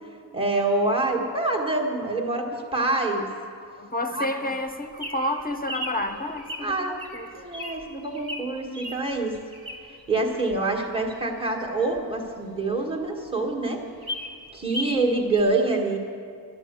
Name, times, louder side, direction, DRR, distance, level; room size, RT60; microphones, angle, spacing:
voice 1, 0.3-3.3 4.1-4.4 6.6-7.0 7.3-9.3 10.1-13.8 14.5-16.0, right 2 dB, 15° right, -1 dB, 1.6 m, -26 dB
voice 2, 3.8-7.3, left 1 dB, 20° left, 6 dB, 0.8 m, -30 dB
Bird vocalization bird call bird song, 4.6-10.1 10.5-12.7 13.0-13.1 13.4-13.5 13.8-15.0 15.3-15.4, equal, 60° right, 2.5 m, -37 dB
12.0 x 11.5 x 8.1 m, 2.3 s
wide cardioid pair, 105°, 41 cm